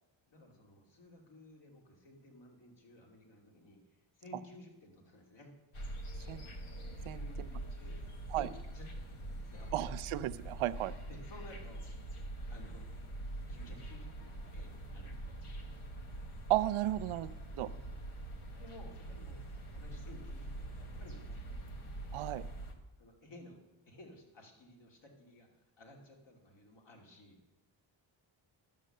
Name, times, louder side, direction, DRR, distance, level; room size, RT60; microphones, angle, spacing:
voice 1, 0.3-5.5 7.1-8.0 8.3-9.7 11.1-11.9 12.5-12.9 13.5-15.5 17.7-17.8 18.5-19.4 19.7-21.6 23.0-27.4, left 1 dB, 60° left, 1 dB, 2.7 m, -55 dB
sound 1, 5.7-22.7, right 1 dB, 90° left, 1.4 m, -44 dB
voice 2, 9.7-10.9 16.5-17.7 22.1-22.4, right 15 dB, 85° right, 14 dB, 0.6 m, -34 dB
11.0 x 7.4 x 6.6 m, 1.0 s
cardioid pair, 75°, 48 cm